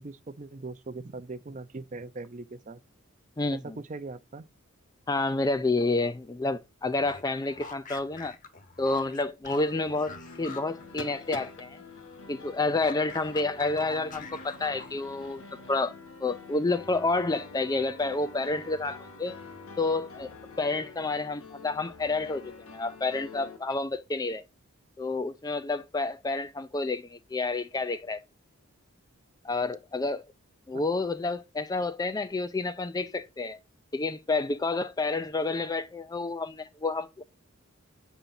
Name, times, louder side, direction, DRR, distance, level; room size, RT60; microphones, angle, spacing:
voice 1, 0.0-2.8 3.5-4.5 30.7-30.8, right 3 dB, 35° right, 0.5 m, -40 dB
voice 2, 3.4-3.7 5.1-8.4 8.8-11.8 12.3-15.4 15.7-15.9 16.2-19.3 19.8-20.3 20.6-24.4 25.0-28.2 29.4-30.2 30.7-33.6 33.9-37.2, left 3 dB, 15° left, 0.4 m, -29 dB
sound 1, 6.9-11.6 11.9-15.2, left 4 dB, 40° left, 1.0 m, -46 dB
sound 2, 9.8-23.6, left 3 dB, 90° left, 1.7 m, -47 dB
sound 3, 10.8-15.8, left 3 dB, 60° left, 1.2 m, -48 dB
8.0 x 3.9 x 5.8 m
head